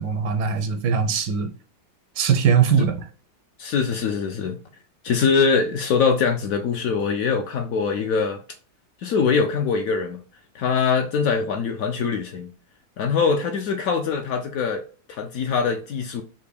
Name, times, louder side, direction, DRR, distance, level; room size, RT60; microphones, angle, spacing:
voice 1, 0.0-1.5 2.2-2.9, right 6 dB, 85° right, 1.4 m, -20 dB
voice 2, 3.6-4.6 5.0-8.4 9.0-10.2 10.5-12.5 13.0-14.8 15.1-16.2, left 5 dB, 70° left, 0.8 m, -23 dB
5.7 x 2.1 x 3.3 m
omnidirectional pair, 1.8 m